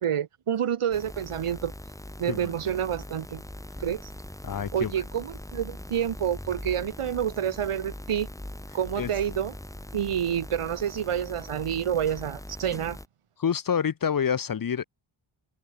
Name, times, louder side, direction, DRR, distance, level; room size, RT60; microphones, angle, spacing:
voice 1, 0.0-1.7 2.2-3.4 3.8-4.1 4.7-8.3 8.7-9.5 9.9-13.0, right 9 dB, 90° right, 1.9 m, -28 dB
sound 1, 0.9-13.1, left 1 dB, 5° left, 3.8 m, -41 dB
voice 2, 4.4-4.9 9.0-9.1 13.4-14.8, left 7 dB, 40° left, 0.8 m, -27 dB
open air
wide cardioid pair, 175°, 50 cm